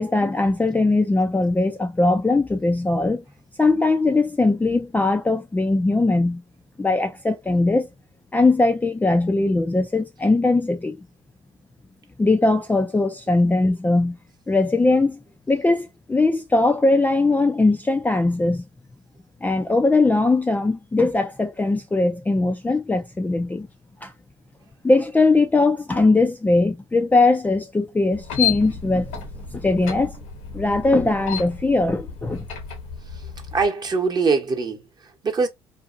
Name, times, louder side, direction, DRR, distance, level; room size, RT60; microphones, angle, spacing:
voice 1, 0.0-3.2 3.6-6.4 6.8-7.9 8.3-11.0 12.2-14.2 14.5-15.2 15.5-18.6 19.4-23.7 24.0-24.1 24.8-29.2 29.5-30.1 30.5-32.4, left 2 dB, 10° left, 0.4 m, -20 dB
sound 1, 28.1-33.7, left 8 dB, 75° left, 1.0 m, -32 dB
voice 2, 33.1-35.5, right 4 dB, 30° right, 0.9 m, -23 dB
2.6 x 2.4 x 2.5 m
hypercardioid pair, 70°, 13 cm